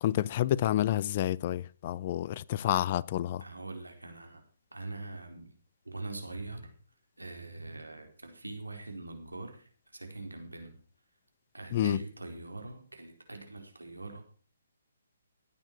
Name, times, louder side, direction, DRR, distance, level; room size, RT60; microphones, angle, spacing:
voice 1, 0.0-3.4 11.7-12.0, left 12 dB, 40° left, 0.6 m, -29 dB
voice 2, 3.4-4.4 4.7-5.5 5.8-6.7 7.2-10.8 11.5-14.2, right 2 dB, 90° right, 4.2 m, -43 dB
16.5 x 9.2 x 6.0 m
figure-of-eight pair, 140°, 0 cm